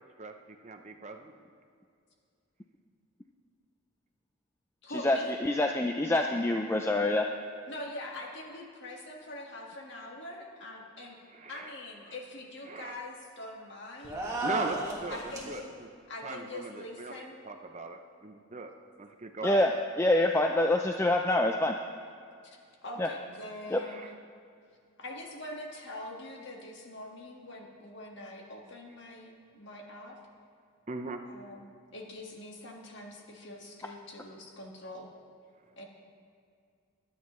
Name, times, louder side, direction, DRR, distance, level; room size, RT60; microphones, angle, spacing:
voice 1, 0.2-1.3 11.4-11.6 12.7-12.9 14.4-14.8 15.0-15.2 15.5-15.6 16.2-17.1 17.4-18.7 19.0-19.5 23.9-24.1 30.9-31.2, right 3 dB, 30° right, 5 dB, 0.6 m, -39 dB
voice 2, 4.8-5.4 7.7-11.2 11.5-15.7 16.1-17.4 19.4-19.6 22.4-24.1 25.0-30.2 31.2-35.1 35.7-35.8, left 1 dB, 50° left, 0 dB, 1.7 m, -44 dB
voice 3, 5.4-7.3 19.4-19.7 20.0-21.7 23.0-23.1 23.7-23.8, left 1 dB, 10° left, 3 dB, 0.3 m, -25 dB
sound 1, 14.0-15.6, right 2 dB, 15° right, 1.7 m, -34 dB
23.0 x 9.4 x 3.1 m, 2.3 s
head